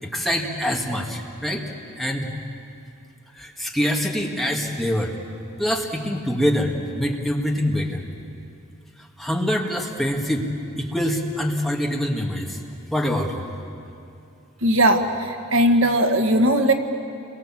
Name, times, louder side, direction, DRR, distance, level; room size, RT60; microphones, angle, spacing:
voice 1, 0.0-1.6 2.0-2.3 3.3-5.2 5.6-8.0 9.0-10.5 10.8-12.6 12.9-13.4, equal, ahead, -1 dB, 2.2 m, -25 dB
voice 2, 14.6-16.7, right 1 dB, 65° right, 5 dB, 1.6 m, -18 dB
29.5 x 23.0 x 7.5 m, 2.6 s
head